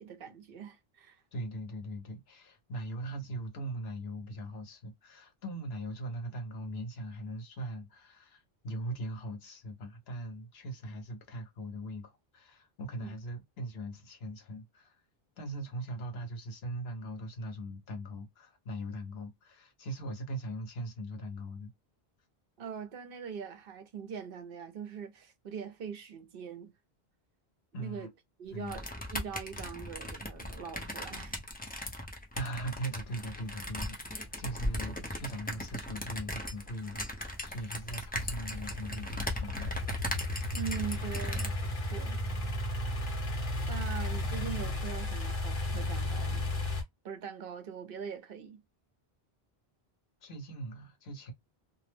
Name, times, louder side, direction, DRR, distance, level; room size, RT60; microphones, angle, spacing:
voice 1, 0.0-1.2 13.0-13.1 22.6-26.7 27.8-28.1 28.4-31.4 40.5-42.2 43.7-46.5 47.0-48.6, right 7 dB, 65° right, 0.8 m, -42 dB
voice 2, 1.3-15.0 15.4-21.7 27.7-28.1 28.5-28.8 32.3-39.7 50.2-51.3, right 1 dB, 80° left, 1.1 m, -40 dB
sound 1, 28.7-41.5, left 1 dB, 10° left, 0.5 m, -38 dB
sound 2, 32.3-46.8, left 1 dB, 55° left, 1.0 m, -35 dB
2.5 x 2.0 x 3.2 m
omnidirectional pair, 1.0 m